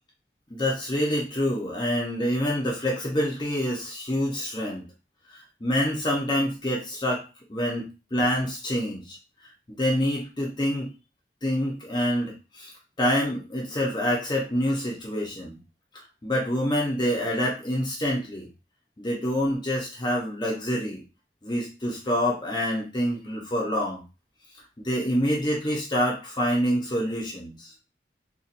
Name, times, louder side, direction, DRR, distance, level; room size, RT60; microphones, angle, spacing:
voice 1, 0.5-4.8 5.3-7.2 7.5-9.2 9.7-10.9 11.4-12.7 13.0-15.6 16.2-18.5 19.0-21.0 21.4-24.0 24.8-27.7, equal, 25° left, -3 dB, 0.8 m, -26 dB
4.1 x 2.5 x 2.5 m, 0.30 s
head